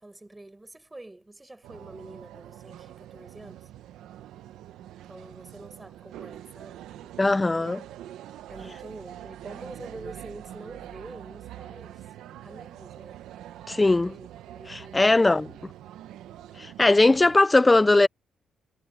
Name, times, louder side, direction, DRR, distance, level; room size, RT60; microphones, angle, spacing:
voice 1, 0.0-3.7 5.0-7.3 8.3-12.1 12.4-13.2 14.1-15.9, right 2 dB, 15° right, 5.3 m, -46 dB
sound 1, 1.6-17.4, right 12 dB, 85° right, 1.2 m, -44 dB
voice 2, 7.2-7.8 13.7-14.1 14.7-15.5 16.6-18.1, left 2 dB, 15° left, 0.5 m, -19 dB
cardioid pair, 90°, 0 cm